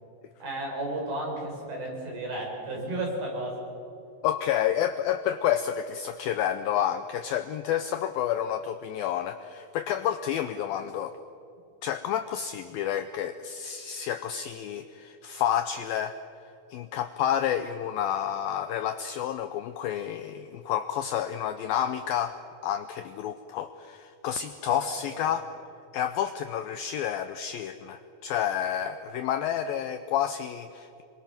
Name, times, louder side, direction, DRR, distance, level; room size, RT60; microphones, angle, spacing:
voice 1, 0.4-3.6 24.7-25.2, right 1 dB, 55° right, -1 dB, 6.9 m, -33 dB
voice 2, 4.2-11.2 11.8-16.2 16.7-22.4 22.6-25.5 25.9-31.0, left 10 dB, 90° left, 9 dB, 2.0 m, -29 dB
27.0 x 24.5 x 6.0 m, 2.7 s
omnidirectional pair, 5.1 m